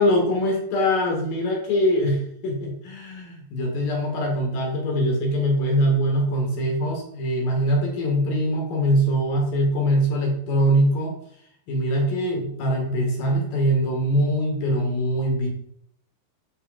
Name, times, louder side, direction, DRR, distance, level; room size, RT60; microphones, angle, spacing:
voice 1, 0.0-11.2 11.7-15.5, equal, 60° left, 0 dB, 3.2 m, -23 dB
12.0 x 4.6 x 4.1 m, 0.68 s
omnidirectional pair, 4.6 m